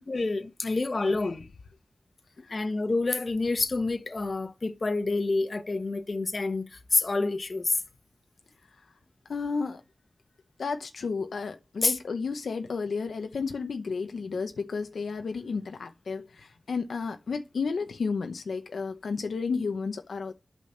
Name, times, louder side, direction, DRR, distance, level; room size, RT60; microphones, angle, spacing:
voice 1, 0.0-1.5 2.5-7.8 11.8-12.0, left 3 dB, 50° left, 1.4 m, -28 dB
voice 2, 0.6-1.3 2.4-2.7 9.3-9.8 10.6-20.3, left 5 dB, 90° left, 0.9 m, -32 dB
8.5 x 6.2 x 7.3 m
wide cardioid pair, 60°, 0 cm